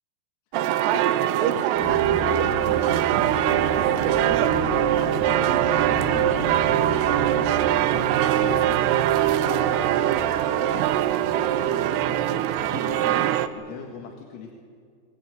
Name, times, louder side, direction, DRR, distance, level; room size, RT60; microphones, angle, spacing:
sound 1, 0.5-13.5, right 12 dB, 90° right, 2.3 m, -22 dB
voice 1, 1.4-4.6 5.0-5.4 5.7-6.3 6.7-9.0 9.8-10.2 10.4-13.2 13.5-14.5, left 6 dB, 85° left, 2 dB, 4.2 m, -41 dB
sound 2, 1.7-13.1, equal, 20° right, 5.4 m, -35 dB
23.5 x 20.0 x 9.2 m, 2.2 s
omnidirectional pair, 5.8 m